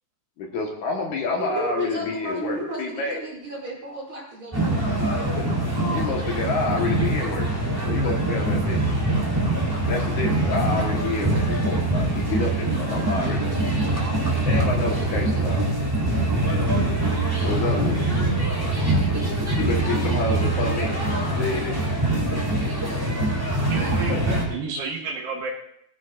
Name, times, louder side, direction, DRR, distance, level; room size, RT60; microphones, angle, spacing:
voice 1, 0.4-3.2 5.9-7.5 7.8-8.8 9.9-13.6 14.5-15.7 17.4-18.1 19.6-21.0 21.4-22.0 24.1-24.2, left 3 dB, 60° left, 0 dB, 2.6 m, -28 dB
voice 2, 1.4-4.8, right 2 dB, 40° right, -2 dB, 3.1 m, -33 dB
sound 1, 4.5-24.4, right 2 dB, 5° right, 2.4 m, -23 dB
voice 3, 23.7-25.5, right 4 dB, 85° right, -3 dB, 3.3 m, -31 dB
21.0 x 15.0 x 2.5 m, 0.74 s
omnidirectional pair, 4.2 m